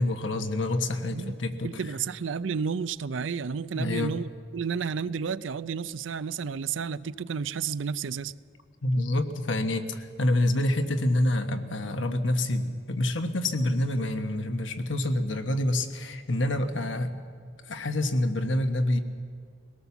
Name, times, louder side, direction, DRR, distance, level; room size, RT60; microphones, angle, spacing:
voice 1, 0.0-1.8 3.7-4.2 8.8-17.2 17.7-19.0, left 1 dB, 90° left, 7 dB, 1.3 m, -27 dB
voice 2, 1.6-8.3, right 6 dB, 90° right, 17 dB, 0.5 m, -31 dB
21.0 x 18.0 x 7.1 m, 2.1 s
head